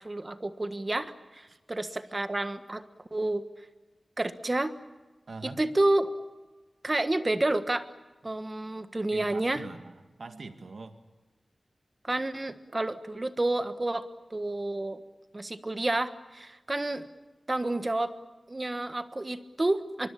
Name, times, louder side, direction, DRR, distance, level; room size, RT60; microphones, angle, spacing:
voice 1, 0.0-2.8 3.1-3.4 4.2-4.7 5.4-6.1 6.8-7.9 8.2-9.6 12.0-15.0 15.3-17.0 17.5-18.1 18.5-20.1, right 2 dB, 30° right, 10 dB, 1.4 m, -30 dB
voice 2, 5.3-5.6 9.1-11.0, right 3 dB, 75° right, 7 dB, 1.9 m, -43 dB
24.0 x 23.5 x 8.6 m, 1.2 s
wide cardioid pair, 75°, 0 cm